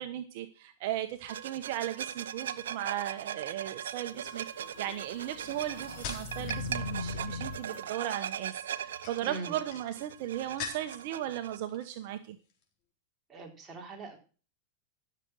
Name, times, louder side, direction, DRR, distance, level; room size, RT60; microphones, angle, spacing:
voice 1, 0.0-4.4 4.8-12.4, right 12 dB, 60° right, 8 dB, 1.1 m, -36 dB
sound 1, 1.3-11.6, right 9 dB, 85° right, 0.7 m, -40 dB
sound 2, 3.2-3.6 4.3-6.7 7.0-7.5 8.7-11.1 11.5-12.1 12.4-12.6, left 5 dB, 50° left, 3.8 m, -44 dB
sound 3, 4.1-7.8, left 3 dB, 65° left, 4.6 m, -40 dB
voice 2, 9.2-9.6 13.3-14.2, right 3 dB, 20° right, 0 dB, 3.9 m, -42 dB
13.5 x 6.9 x 6.3 m, 0.37 s
hypercardioid pair, 125°, 0 cm